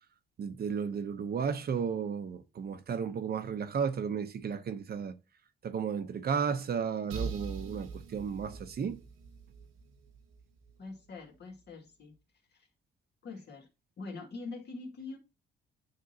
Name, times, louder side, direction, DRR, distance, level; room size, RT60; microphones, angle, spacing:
voice 1, 0.4-5.2 5.6-9.0, right 6 dB, 50° right, 0.9 m, -33 dB
sound 1, 7.1-10.8, right 5 dB, 85° right, 0.9 m, -42 dB
voice 2, 10.8-12.2 12.5-12.7 13.2-13.7 14.0-15.2, left 3 dB, 55° left, 2.2 m, -44 dB
9.5 x 3.6 x 2.9 m
cardioid pair, 90°, 20 cm